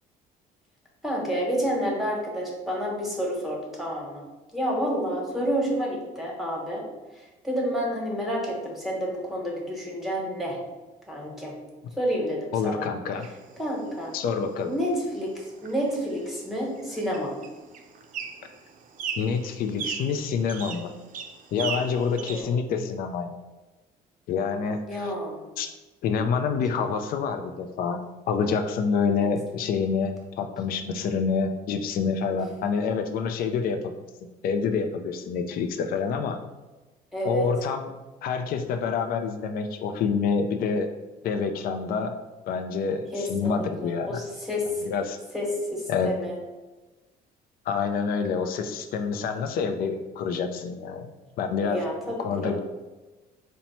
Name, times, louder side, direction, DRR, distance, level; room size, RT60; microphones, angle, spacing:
voice 1, 1.0-4.2 4.5-6.8 7.4-10.6 11.1-11.6 12.0-12.9 13.6-14.1 14.6-17.4 22.3-22.5 24.9-25.4 32.3-32.4 37.1-37.5 43.1-44.8 45.3-46.4 51.6-52.5, equal, ahead, -3 dB, 1.1 m, -29 dB
voice 2, 12.5-13.3 14.1-14.7 19.2-20.9 21.5-23.3 24.3-25.1 25.6-25.7 26.0-28.0 28.3-33.9 34.4-36.4 37.2-37.9 38.2-40.9 41.2-42.2 42.5-44.2 44.9-45.2 45.9-46.1 47.7-51.1 51.4-51.8 52.2-52.6, left 5 dB, 60° left, 7 dB, 0.4 m, -27 dB
sound 1, 13.2-22.4, right 6 dB, 50° right, 0.5 m, -39 dB
4.2 x 2.1 x 4.2 m, 1.2 s
cardioid pair, 110°, 17 cm